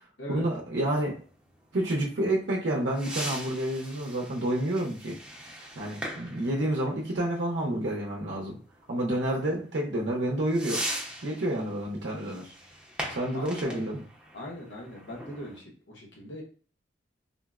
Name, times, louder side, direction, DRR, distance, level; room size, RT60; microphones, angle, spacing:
voice 1, 0.3-1.1 1.7-5.2 5.8-8.6 8.9-10.8 11.2-12.5 13.1-14.0, right 1 dB, 70° right, -2 dB, 0.6 m, -29 dB
sound 1, 0.8-15.6, right 1 dB, 5° right, 0.5 m, -41 dB
voice 2, 13.3-13.9 14.3-16.4, left 1 dB, 70° left, -2 dB, 0.9 m, -40 dB
3.7 x 2.0 x 2.3 m, 0.40 s
head